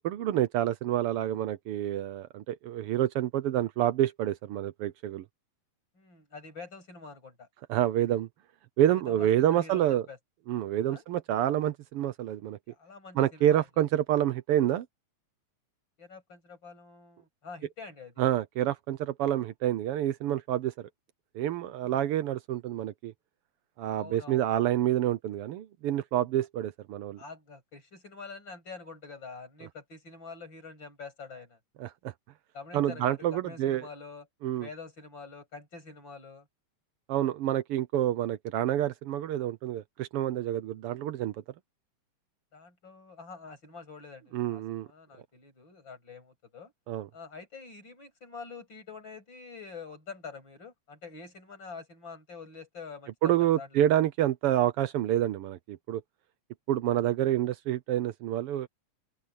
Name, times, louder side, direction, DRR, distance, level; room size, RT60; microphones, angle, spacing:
voice 1, 0.0-5.2 7.7-8.3 8.8-10.0 10.5-12.6 13.2-14.9 18.2-20.7 21.3-23.1 23.8-27.2 31.8-32.1 32.7-33.9 34.4-34.7 37.1-41.3 44.3-44.9 46.9-47.1 53.2-56.0 56.7-58.7, right 12 dB, 90° right, 1.2 m, -28 dB
voice 2, 5.9-7.5 8.9-10.2 10.9-11.0 12.7-13.8 16.0-18.3 21.8-22.0 24.0-24.5 27.2-31.6 32.5-34.3 34.6-36.5 42.5-46.7 47.1-53.9, left 4 dB, 35° left, 8.3 m, -46 dB
open air
omnidirectional pair, 3.6 m